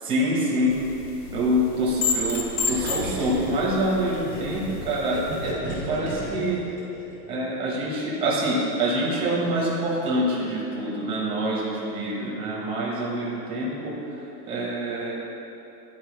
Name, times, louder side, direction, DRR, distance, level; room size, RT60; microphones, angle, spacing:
voice 1, 0.0-0.8 1.3-5.6 5.9-6.6 7.3-14.2 14.5-15.1, right 1 dB, 10° right, -6 dB, 1.0 m, -26 dB
sound 1, 0.7-5.5, left 4 dB, 70° left, 1.0 m, -32 dB
Gurgling, 2.7-7.3, right 1 dB, 5° left, 0.4 m, -34 dB
10.5 x 4.4 x 3.2 m, 2.9 s
supercardioid pair, 170°, 48 cm